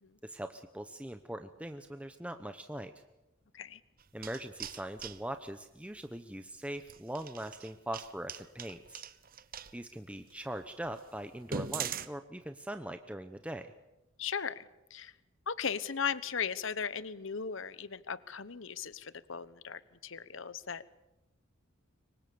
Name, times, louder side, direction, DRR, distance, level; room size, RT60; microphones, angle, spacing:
voice 1, 0.2-2.9 4.1-9.0 9.7-13.7, right 1 dB, 5° right, 8 dB, 0.9 m, -41 dB
sound 1, 4.0-5.2 6.8-9.7 10.3-10.4 10.8-10.9 11.4-12.1, right 7 dB, 45° right, 1.0 m, -40 dB
voice 2, 14.2-15.1 15.5-20.8, left 6 dB, 60° left, 16 dB, 1.0 m, -37 dB
26.0 x 24.0 x 7.0 m, 0.95 s
head